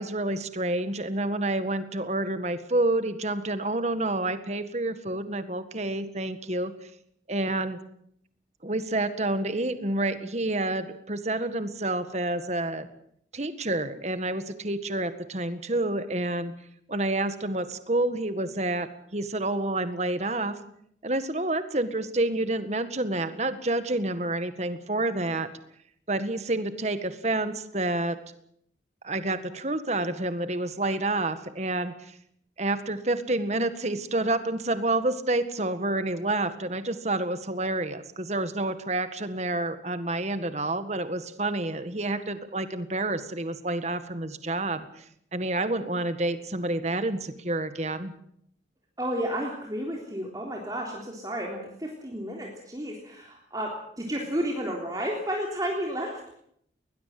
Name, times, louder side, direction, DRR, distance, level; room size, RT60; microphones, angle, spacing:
voice 1, 0.0-6.7 7.3-7.8 8.6-12.9 13.3-16.5 16.9-20.6 21.0-25.5 26.1-28.2 29.0-32.2 32.6-45.0 45.3-48.1, right 2 dB, 40° right, 10 dB, 1.8 m, -29 dB
voice 2, 49.0-53.7 54.0-56.2, equal, 20° right, -1 dB, 3.5 m, -32 dB
21.0 x 20.0 x 7.8 m, 0.69 s
head